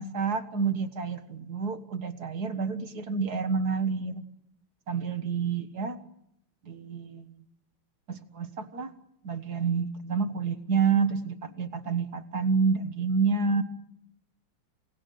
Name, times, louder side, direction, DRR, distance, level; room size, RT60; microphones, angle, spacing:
voice 1, 0.0-4.2 4.9-6.0 6.7-7.3 8.1-8.9 9.2-13.6, right 5 dB, 50° right, 10 dB, 1.9 m, -28 dB
28.5 x 18.5 x 9.4 m, 0.79 s
omnidirectional pair, 2.4 m